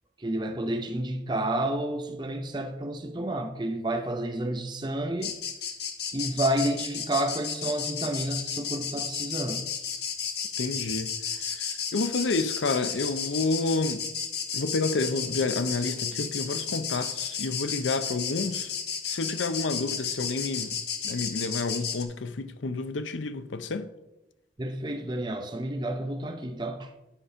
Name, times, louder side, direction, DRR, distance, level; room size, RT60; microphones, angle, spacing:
voice 1, 0.2-5.4 6.1-9.7 24.6-26.9, right 1 dB, 25° right, 0.6 m, -30 dB
sound 1, 5.2-22.0, left 7 dB, 60° left, 1.1 m, -33 dB
voice 2, 10.6-11.1 11.4-14.0 14.5-18.7 19.0-20.8 21.0-23.9, left 3 dB, 85° left, 0.6 m, -29 dB
10.0 x 5.1 x 5.5 m
head